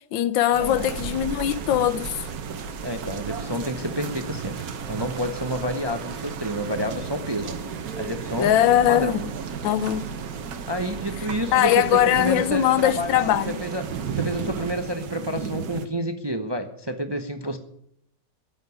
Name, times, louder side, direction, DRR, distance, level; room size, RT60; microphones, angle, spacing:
voice 1, 0.1-2.2 8.4-9.3 9.6-10.1 11.5-13.6, left 12 dB, 85° left, 1.5 m, -21 dB
sound 1, 0.5-14.7, right 5 dB, 55° right, 1.5 m, -36 dB
sound 2, 0.6-15.9, right 7 dB, 70° right, 1.7 m, -37 dB
voice 2, 2.8-4.5 4.9-7.5 8.0-8.5 8.9-9.2 10.7-13.9 14.2-17.6, equal, 20° right, 0.7 m, -29 dB
16.0 x 7.8 x 9.4 m
omnidirectional pair, 2.0 m